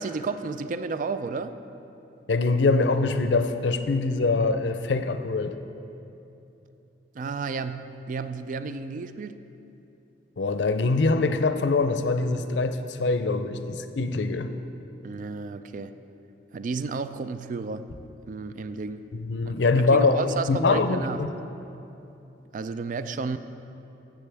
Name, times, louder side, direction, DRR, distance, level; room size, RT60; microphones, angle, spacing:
voice 1, 0.0-1.6 7.1-9.4 15.0-15.9 16.5-17.9 18.3-19.1 19.6-21.3 22.5-23.4, right 4 dB, 45° right, 11 dB, 0.3 m, -32 dB
voice 2, 2.3-5.5 10.4-14.5 19.1-21.3, left 3 dB, 85° left, 9 dB, 0.5 m, -24 dB
15.0 x 7.4 x 3.4 m, 2.9 s
head